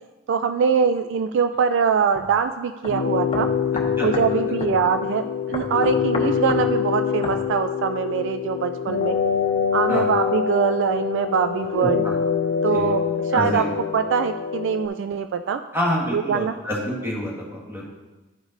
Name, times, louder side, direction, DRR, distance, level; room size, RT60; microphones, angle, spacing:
voice 1, 0.3-3.5 4.0-9.2 9.7-12.1 12.6-13.0 13.3-13.6 13.9-15.6 16.1-16.5, right 6 dB, 60° right, 9 dB, 0.3 m, -23 dB
sound 1, 2.1-2.3 2.8-2.9 3.3-4.3 4.6-4.8 5.5-6.7 7.2-7.4, left 2 dB, 25° left, 0.8 m, -31 dB
sound 2, 2.9-14.9, left 7 dB, 60° left, 0.4 m, -25 dB
voice 2, 9.9-10.2 11.8-12.1 12.6-12.9 13.3-13.7 15.7-17.9, equal, 10° right, -4 dB, 1.6 m, -27 dB
10.0 x 5.0 x 4.0 m, 1.2 s
head